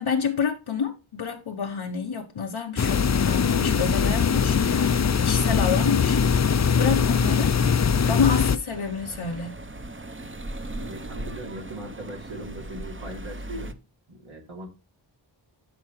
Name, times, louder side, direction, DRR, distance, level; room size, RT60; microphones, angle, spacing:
voice 1, 0.0-6.2 6.7-7.5 8.1-9.6, left 6 dB, 90° left, 0.9 m, -28 dB
sound 1, 2.8-8.6, left 6 dB, 40° left, 0.4 m, -21 dB
sound 2, 8.7-13.7, right 2 dB, 25° right, 0.7 m, -38 dB
voice 2, 10.7-13.8 14.1-14.7, right 1 dB, 90° right, 2.9 m, -39 dB
12.0 x 4.7 x 3.1 m
wide cardioid pair, 45°, 46 cm